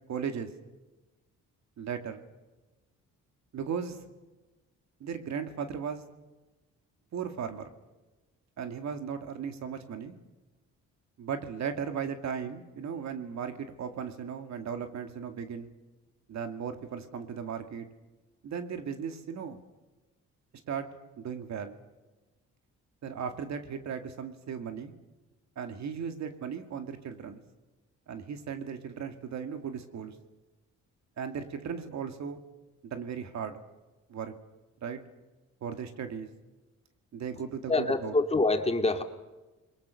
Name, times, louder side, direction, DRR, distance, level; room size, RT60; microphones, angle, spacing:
voice 1, 0.1-0.5 1.8-2.2 3.5-4.0 5.0-6.0 7.1-7.7 8.6-10.2 11.2-15.7 16.3-17.9 18.4-19.6 20.7-20.9 21.2-21.8 23.0-24.9 25.6-27.4 28.1-30.2 31.2-32.4 32.8-33.6 34.1-34.3 34.8-35.0 35.6-36.3 37.1-38.1, right 7 dB, 65° right, 7 dB, 2.3 m, -36 dB
voice 2, 37.7-39.0, left 2 dB, 20° left, 6 dB, 2.2 m, -26 dB
29.0 x 22.5 x 6.5 m, 1.1 s
cardioid pair, 90°, 30 cm